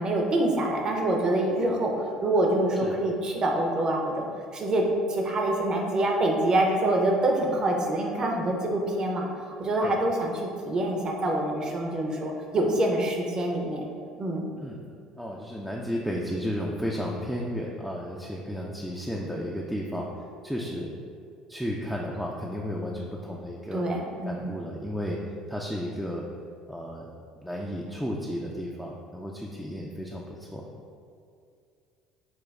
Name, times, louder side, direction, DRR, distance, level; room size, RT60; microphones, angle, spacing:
voice 1, 0.0-4.2 4.5-4.8 5.1-13.9 14.2-14.5 23.7-24.6, right 1 dB, 40° right, 0 dB, 0.7 m, -26 dB
voice 2, 15.2-20.1 20.4-20.9 21.5-23.8 24.3-25.2 25.5-26.3 26.7-27.1 27.4-30.7, equal, ahead, -3 dB, 0.4 m, -33 dB
6.1 x 2.2 x 2.4 m, 2.5 s
hypercardioid pair, 65°, 2 cm